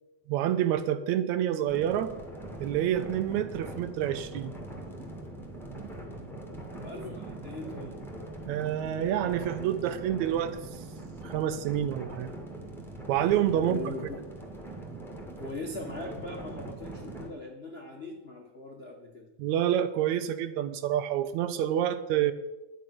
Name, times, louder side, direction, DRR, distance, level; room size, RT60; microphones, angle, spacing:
voice 1, 0.3-2.1 2.6-4.5 8.5-10.6 11.2-12.3 13.1-13.9 19.4-22.3, right 11 dB, 80° right, 12 dB, 1.9 m, -28 dB
sound 1, 1.7-17.3, right 2 dB, ahead, 1.3 m, -42 dB
voice 2, 6.7-8.0 13.5-14.2 15.4-19.3, left 2 dB, 75° left, 0 dB, 0.5 m, -40 dB
11.0 x 8.5 x 6.0 m, 1.0 s
omnidirectional pair, 3.5 m